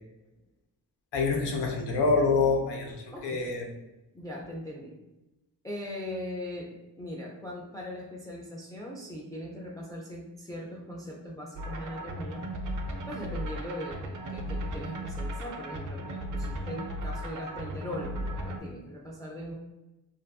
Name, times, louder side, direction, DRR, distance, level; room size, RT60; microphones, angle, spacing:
voice 1, 1.1-3.7, left 4 dB, 90° left, 1 dB, 0.6 m, -26 dB
voice 2, 3.1-3.5 4.1-5.0 5.6-12.5 13.1-19.5, equal, 10° left, -2 dB, 0.4 m, -40 dB
sound 1, 11.5-18.6, right 1 dB, 50° right, 0.5 m, -36 dB
2.6 x 2.4 x 2.2 m, 0.99 s
cardioid pair, 55°, 40 cm